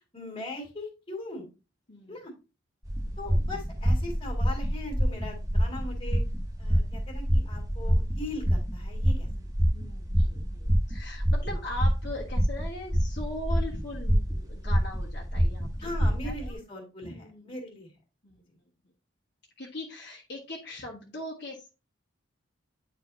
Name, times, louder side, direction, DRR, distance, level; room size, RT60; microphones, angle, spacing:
voice 1, 0.1-1.4 2.1-2.3 3.2-6.2 6.6-9.3 15.8-17.1 17.4-17.9, left 2 dB, 25° left, 0 dB, 2.1 m, -39 dB
voice 2, 1.9-2.2 3.0-3.2 9.3-9.5 9.7-16.0 16.2-16.6 17.0-17.6 18.2-18.6 19.6-21.7, left 1 dB, 55° left, -3 dB, 1.4 m, -40 dB
sound 1, 2.8-16.5, equal, 15° right, 1.2 m, -27 dB
9.7 x 4.1 x 2.7 m, 0.30 s
head